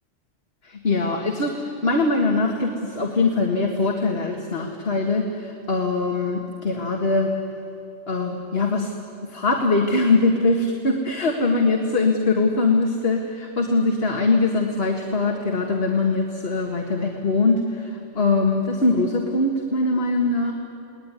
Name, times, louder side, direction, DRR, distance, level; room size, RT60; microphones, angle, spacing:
voice 1, 0.6-7.4 8.1-8.9 9.2-20.5, left 3 dB, 55° left, 2 dB, 2.1 m, -22 dB
29.5 x 20.0 x 9.8 m, 2.7 s
omnidirectional pair, 1.2 m